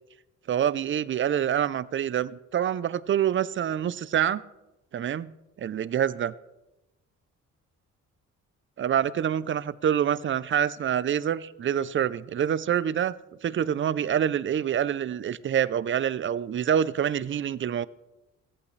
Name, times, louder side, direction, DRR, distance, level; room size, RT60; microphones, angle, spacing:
voice 1, 0.5-4.4 4.9-5.3 5.6-6.3 8.8-13.1 13.4-17.9, right 9 dB, 40° right, 18 dB, 0.5 m, -26 dB
15.5 x 14.5 x 3.3 m, 0.99 s
cardioid pair, 90°, 30 cm